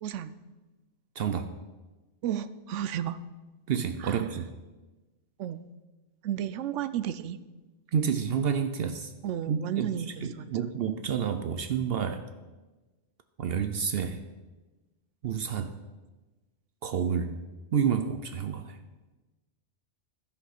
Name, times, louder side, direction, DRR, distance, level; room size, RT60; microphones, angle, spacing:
voice 1, 0.0-0.4 2.2-3.2 4.0-4.3 5.4-5.6 6.2-7.4 9.2-10.7, right 10 dB, 90° right, 14 dB, 0.9 m, -33 dB
voice 2, 1.2-1.5 3.7-4.5 7.9-9.1 9.5-9.9 10.2-12.2 13.4-14.2 15.2-15.7 16.8-17.3 17.7-18.8, right 7 dB, 65° right, 9 dB, 0.7 m, -29 dB
13.0 x 5.3 x 5.8 m, 1.2 s
omnidirectional pair, 1.2 m